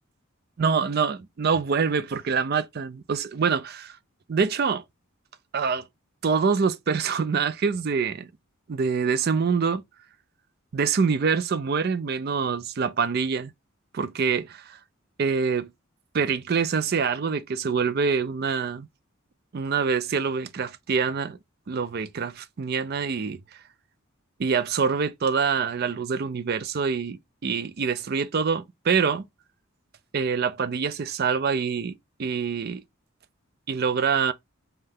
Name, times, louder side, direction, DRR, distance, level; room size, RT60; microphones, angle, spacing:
voice 1, 0.6-3.9 4.3-4.8 5.5-5.8 6.2-8.3 8.7-9.8 10.7-13.5 13.9-14.8 15.2-15.7 16.1-18.9 19.5-21.4 21.7-23.4 24.4-29.2 30.1-32.8 33.7-34.3, right 5 dB, 45° right, 0.4 m, -25 dB
5.4 x 2.3 x 3.4 m
head